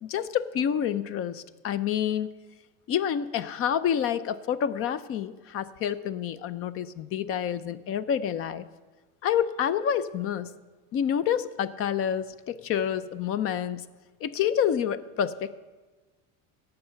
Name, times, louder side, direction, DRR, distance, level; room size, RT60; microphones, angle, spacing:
voice 1, 0.0-2.3 2.9-8.7 9.2-10.5 10.9-13.8 14.2-15.6, left 9 dB, 40° left, 16 dB, 0.5 m, -28 dB
17.5 x 6.7 x 5.7 m, 1.3 s
cardioid pair, 145°, 37 cm